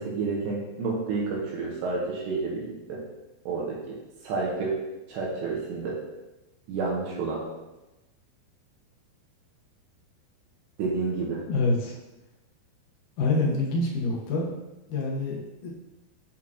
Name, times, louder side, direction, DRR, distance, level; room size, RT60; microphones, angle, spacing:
voice 1, 0.0-3.0 3.5-4.8 5.1-6.0 6.7-7.4 10.8-11.4, right 4 dB, 80° right, -3 dB, 3.2 m, -30 dB
voice 2, 11.4-12.0 13.2-14.5 14.9-15.7, left 2 dB, 70° left, -3 dB, 2.0 m, -26 dB
8.6 x 5.5 x 2.9 m, 1.0 s
omnidirectional pair, 5.2 m